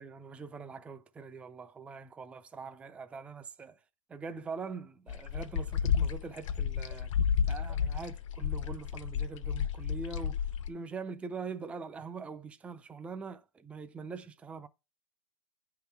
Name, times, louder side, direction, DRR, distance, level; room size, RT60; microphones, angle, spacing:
voice 1, 0.0-3.8 4.1-7.1 7.5-14.7, right 5 dB, 5° right, 0.4 m, -43 dB
sound 1, 5.1-10.7, left 7 dB, 60° left, 0.8 m, -31 dB
9.0 x 3.8 x 5.7 m
hypercardioid pair, 125°, 18 cm